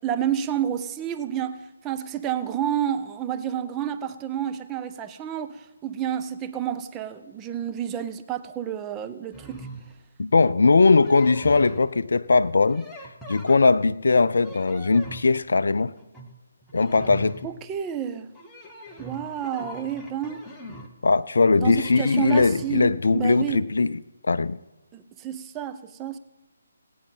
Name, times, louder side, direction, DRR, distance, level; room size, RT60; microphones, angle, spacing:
voice 1, 0.0-9.7 17.4-18.3 19.0-20.4 21.6-23.6 24.9-26.2, right 9 dB, 15° right, 0.5 m, -30 dB
sound 1, 9.3-10.0 10.8-11.9 12.7-13.9 14.3-15.3 15.9-16.3 16.6-17.6 18.3-20.9 21.8-22.8, right 1 dB, 5° left, 1.0 m, -41 dB
voice 2, 10.2-12.9 13.3-15.9 16.7-17.4 21.0-24.0 24.3-24.6, left 4 dB, 55° left, 0.4 m, -20 dB
18.0 x 9.2 x 4.0 m
figure-of-eight pair, 145°, 0 cm